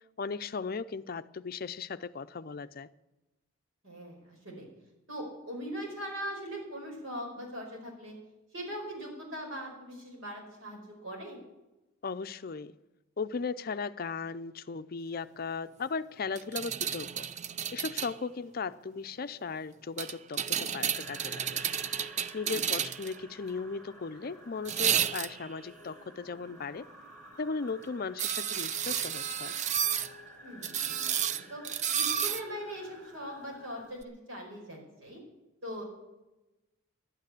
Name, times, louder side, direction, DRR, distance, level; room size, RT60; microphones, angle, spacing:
voice 1, 0.2-2.9 12.0-12.7 13.2-17.3 17.7-21.6 22.3-26.9 27.4-29.6, left 4 dB, 45° left, 0.5 m, -37 dB
voice 2, 3.8-4.7 5.1-8.2 8.5-11.4 22.4-22.7 30.4-31.7 31.9-35.2 35.6-35.8, equal, 70° right, 5.1 m, -41 dB
sound 1, 16.4-18.2 20.0-23.2 24.7-25.5 28.2-30.1 30.6-32.4 34.0-34.1, right 8 dB, 35° right, 0.4 m, -31 dB
sound 2, 20.9-33.8, equal, 10° left, 6.3 m, -52 dB
11.5 x 9.2 x 9.7 m
head